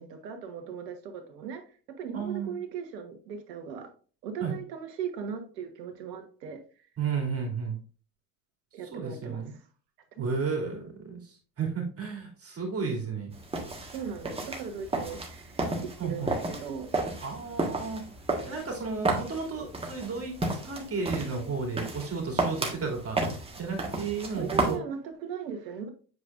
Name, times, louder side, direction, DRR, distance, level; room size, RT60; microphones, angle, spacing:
voice 1, 0.0-1.6 2.0-3.9 4.2-6.6 8.7-9.6 10.2-10.3 10.6-10.7 13.9-16.9 24.3-25.9, right 6 dB, 80° right, 1.3 m, -38 dB
voice 2, 2.1-2.6 4.4-4.6 7.0-7.8 8.9-9.5 10.2-13.3 16.0-16.3 17.2-18.0 18.4-23.2 23.6-24.8, right 5 dB, 30° right, 2.8 m, -33 dB
sound 1, 13.3-24.7, right 2 dB, 10° right, 1.5 m, -33 dB
7.9 x 4.9 x 2.5 m
hypercardioid pair, 90°, 49 cm